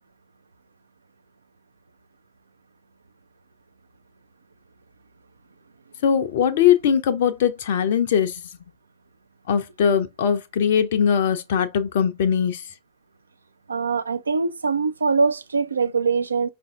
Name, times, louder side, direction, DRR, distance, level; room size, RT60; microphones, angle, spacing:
voice 1, 6.0-8.4 9.5-12.7, left 8 dB, 55° left, 0.4 m, -21 dB
voice 2, 13.7-16.5, right 4 dB, 75° right, 0.4 m, -23 dB
5.3 x 2.5 x 3.4 m
figure-of-eight pair, 90°, 0 cm